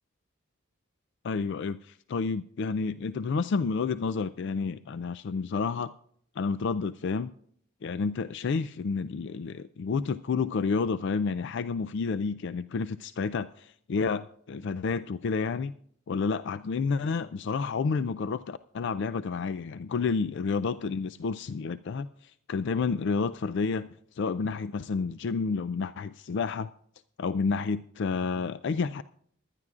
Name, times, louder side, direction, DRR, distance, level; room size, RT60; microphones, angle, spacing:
voice 1, 1.2-5.9 6.4-7.3 7.8-15.7 16.1-23.9 24.1-26.7 27.2-29.0, left 5 dB, 60° left, 14 dB, 0.4 m, -30 dB
21.5 x 11.0 x 2.4 m, 0.62 s
head